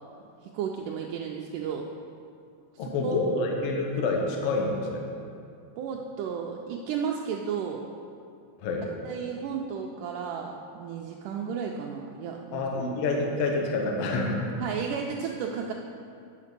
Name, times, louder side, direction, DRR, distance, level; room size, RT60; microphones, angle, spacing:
voice 1, 0.4-1.9 2.7-3.3 5.8-7.8 9.1-12.6 14.6-15.7, right 7 dB, 85° right, 0 dB, 1.8 m, -33 dB
voice 2, 2.8-5.0 8.6-8.9 12.5-14.5, left 2 dB, 85° left, 1 dB, 1.3 m, -27 dB
9.4 x 5.8 x 6.6 m, 2.4 s
omnidirectional pair, 4.3 m